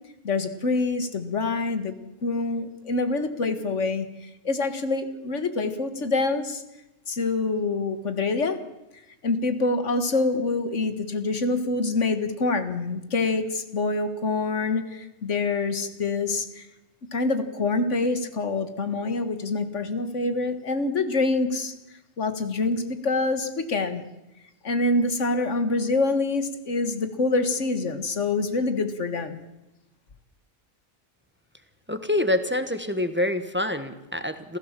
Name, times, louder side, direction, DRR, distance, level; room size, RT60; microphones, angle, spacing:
voice 1, 0.2-6.6 7.1-8.6 9.2-16.7 17.1-21.7 22.2-24.0 24.6-29.4, left 3 dB, 85° left, 10 dB, 2.0 m, -26 dB
voice 2, 31.9-34.6, left 1 dB, 10° right, 10 dB, 1.3 m, -26 dB
28.0 x 15.0 x 7.5 m, 0.96 s
omnidirectional pair, 1.2 m